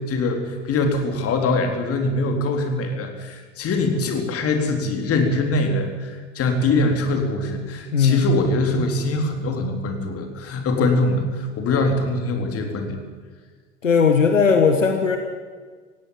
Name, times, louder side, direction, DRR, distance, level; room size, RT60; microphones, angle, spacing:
voice 1, 0.1-13.0, left 2 dB, 40° left, 4 dB, 3.9 m, -23 dB
voice 2, 7.9-8.3 13.8-15.2, left 5 dB, 85° left, 5 dB, 1.6 m, -17 dB
17.5 x 16.5 x 9.1 m, 1.5 s
figure-of-eight pair, 75°, 37 cm